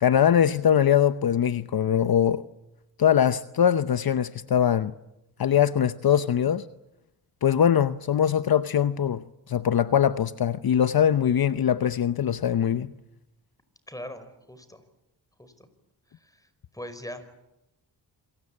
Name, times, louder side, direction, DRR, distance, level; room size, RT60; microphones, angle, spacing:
voice 1, 0.0-2.4 3.0-4.9 5.4-6.7 7.4-12.9, left 9 dB, 55° left, 0.9 m, -22 dB
voice 2, 13.9-14.8 15.4-15.7 16.2-16.5 16.7-17.2, left 1 dB, 10° left, 5.1 m, -41 dB
27.5 x 23.0 x 8.6 m
cardioid pair, 80°, 43 cm